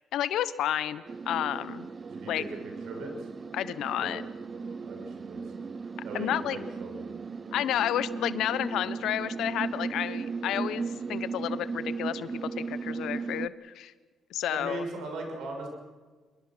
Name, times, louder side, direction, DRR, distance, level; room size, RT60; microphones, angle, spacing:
voice 1, 0.0-1.9 2.3-2.4 3.5-4.2 6.1-6.6 7.5-13.9 14.3-14.8, left 11 dB, 80° left, 15 dB, 1.0 m, -31 dB
sound 1, 1.1-13.5, right 4 dB, 35° right, 0.6 m, -36 dB
voice 2, 2.1-3.3 4.0-4.1 4.6-5.4 6.0-7.1 14.5-15.7, right 2 dB, 80° right, 2 dB, 6.4 m, -39 dB
26.0 x 22.5 x 6.2 m, 1.4 s
cardioid pair, 90°, 0 cm